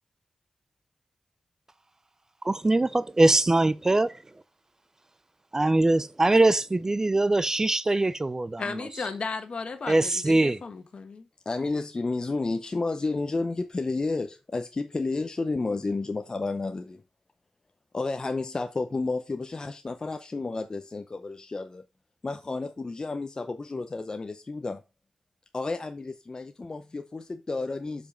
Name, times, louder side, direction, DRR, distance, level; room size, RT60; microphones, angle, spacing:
voice 1, 2.4-4.2 5.5-8.6 9.9-10.6, right 2 dB, 25° right, 0.4 m, -22 dB
voice 2, 8.6-11.3, left 4 dB, 60° left, 1.4 m, -35 dB
voice 3, 11.5-17.0 17.9-21.8 22.2-24.8 25.5-28.1, left 3 dB, 40° left, 0.7 m, -31 dB
7.2 x 5.2 x 5.1 m
wide cardioid pair, 80°, 2 cm